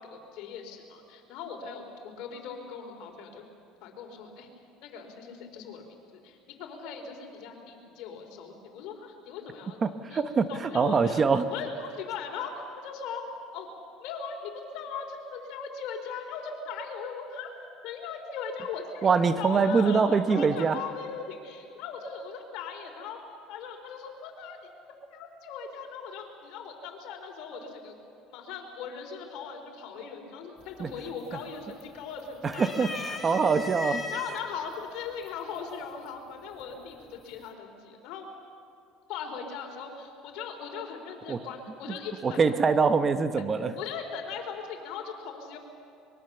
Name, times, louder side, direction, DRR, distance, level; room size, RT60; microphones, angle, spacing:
voice 1, 0.1-3.4 3.8-4.5 4.8-5.8 6.1-9.8 10.1-10.2 10.5-12.5 12.8-13.2 13.5-13.7 14.0-17.5 17.8-19.1 19.4-23.2 23.5-24.6 25.1-27.9 28.3-33.0 33.2-38.3 39.1-42.6 43.8-45.6, left 6 dB, 70° left, 2 dB, 4.3 m, -39 dB
voice 2, 9.8-11.5 19.0-20.8 30.8-30.9 32.4-32.9 33.2-34.1 41.3-41.4 42.2-43.7, right 5 dB, 30° right, 10 dB, 1.1 m, -24 dB
sound 1, 30.6-31.0 31.4-32.1 32.5-34.4 35.3-35.4 36.6-37.1, left 3 dB, 15° left, 2.6 m, -37 dB
24.5 x 22.0 x 7.1 m, 2.6 s
supercardioid pair, 110°, 0 cm